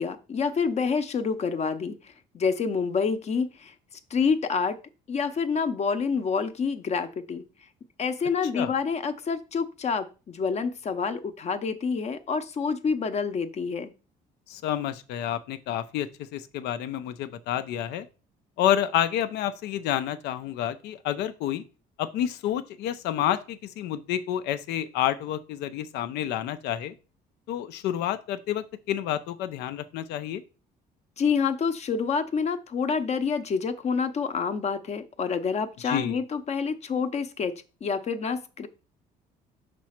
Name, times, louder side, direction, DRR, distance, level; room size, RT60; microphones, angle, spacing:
voice 1, 0.0-3.7 4.1-4.8 5.1-7.4 8.0-13.9 31.2-37.5 37.8-38.7, left 5 dB, 40° left, 9 dB, 0.8 m, -27 dB
voice 2, 14.5-18.1 18.6-21.6 22.0-26.9 27.5-30.4 35.8-36.2, left 11 dB, 85° left, 12 dB, 0.6 m, -29 dB
6.0 x 3.2 x 5.8 m, 0.33 s
cardioid pair, 110°, 17 cm